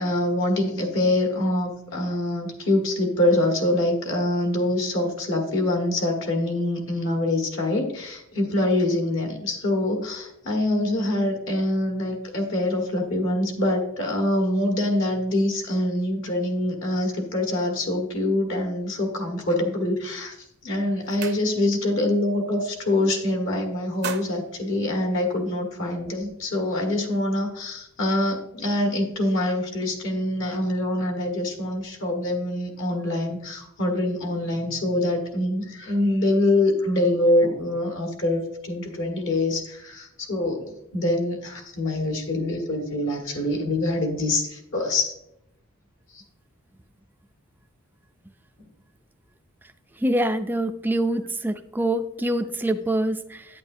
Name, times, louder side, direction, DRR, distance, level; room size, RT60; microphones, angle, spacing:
voice 1, 0.0-20.4 20.6-45.1 46.1-46.2, left 1 dB, 65° left, 2 dB, 1.5 m, -25 dB
sound 1, 20.2-20.4 20.8-21.9 22.3-22.5 22.8-23.4 23.7-25.6, right 7 dB, 55° right, 0.6 m, -39 dB
voice 2, 50.0-53.5, right 1 dB, 10° right, 8 dB, 0.4 m, -25 dB
8.9 x 8.7 x 2.7 m, 0.80 s
head